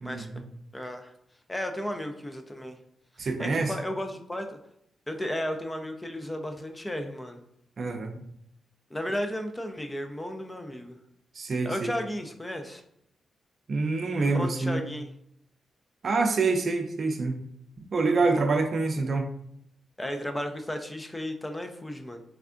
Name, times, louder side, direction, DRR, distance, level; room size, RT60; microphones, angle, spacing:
voice 1, 0.0-0.5 3.2-3.7 7.8-8.2 11.3-11.9 13.7-14.8 16.0-17.4 17.8-19.3, right 3 dB, 55° right, 5 dB, 0.5 m, -26 dB
voice 2, 0.7-1.1 1.5-2.8 3.2-4.6 5.1-7.4 8.9-11.0 11.6-12.8 14.2-15.1 18.3-18.4 20.0-22.2, left 1 dB, 15° left, 5 dB, 0.4 m, -34 dB
3.4 x 3.3 x 2.5 m, 0.74 s
cardioid pair, 85°, 0 cm